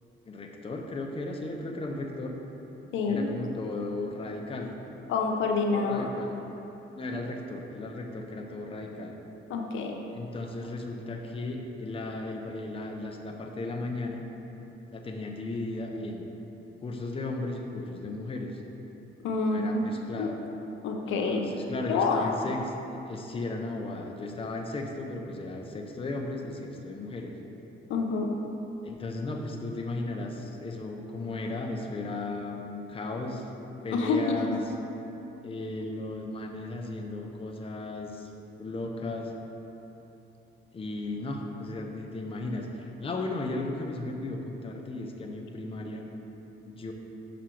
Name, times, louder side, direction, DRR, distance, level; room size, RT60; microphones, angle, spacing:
voice 1, 0.3-2.3 3.1-4.7 5.7-6.3 6.9-9.1 10.1-14.2 14.9-16.2 16.8-18.6 19.5-20.4 21.1-27.4 28.8-33.5 33.8-34.6 35.4-38.3 38.6-39.3 40.7-46.0 46.6-46.9, left 2 dB, 30° left, 1 dB, 0.7 m, -35 dB
voice 2, 2.9-3.3 5.1-6.1 9.5-10.0 19.2-19.7 20.2-20.3 20.8-21.4 21.9-22.3 27.9-28.4 33.9-34.2 34.5-34.6, left 4 dB, 80° left, 2 dB, 0.7 m, -27 dB
6.0 x 5.1 x 4.5 m, 2.9 s
cardioid pair, 90°, 20 cm